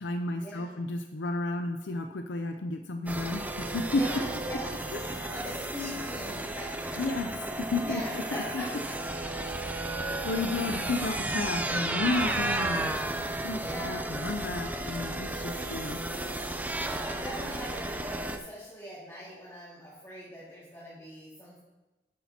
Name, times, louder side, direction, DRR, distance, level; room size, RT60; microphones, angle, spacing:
voice 1, 0.0-4.0 4.9-5.3 7.0-8.0 8.3-8.6 10.2-12.9 13.4-16.0, left 3 dB, 90° left, 6 dB, 0.6 m, -32 dB
sound 1, 3.1-18.4, right 2 dB, 10° right, 0.4 m, -33 dB
voice 2, 3.9-4.7 5.1-7.0 7.8-8.9 10.1-10.3 13.5-14.0 17.0-21.6, equal, 15° left, -8 dB, 2.1 m, -41 dB
11.5 x 8.6 x 2.8 m, 1.1 s
head